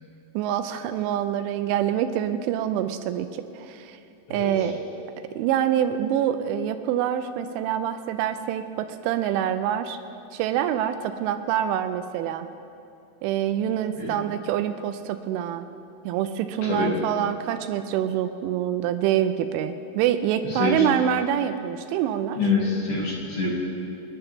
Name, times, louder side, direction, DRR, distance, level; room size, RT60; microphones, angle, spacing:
voice 1, 0.3-4.0 4.3-4.8 5.4-10.0 10.3-12.5 13.2-15.7 16.1-22.5, right 10 dB, 85° right, 9 dB, 2.9 m, -26 dB
voice 2, 22.4-23.5, left 4 dB, 55° left, -4 dB, 3.9 m, -25 dB
26.5 x 11.0 x 3.6 m, 2.8 s
omnidirectional pair, 5.6 m